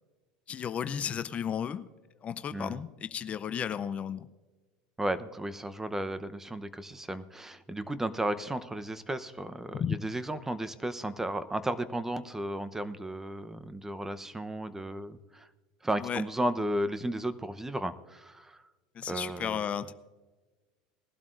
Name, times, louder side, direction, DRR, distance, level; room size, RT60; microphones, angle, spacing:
voice 1, 0.5-1.9 2.2-4.3 9.7-10.0 16.0-16.2 18.9-19.9, left 8 dB, 35° left, 12 dB, 0.6 m, -33 dB
voice 2, 5.0-15.5 15.8-18.6 19.1-19.6, right 1 dB, 10° right, 12 dB, 0.8 m, -34 dB
20.5 x 12.0 x 2.5 m, 1.2 s
hypercardioid pair, 85°, 4 cm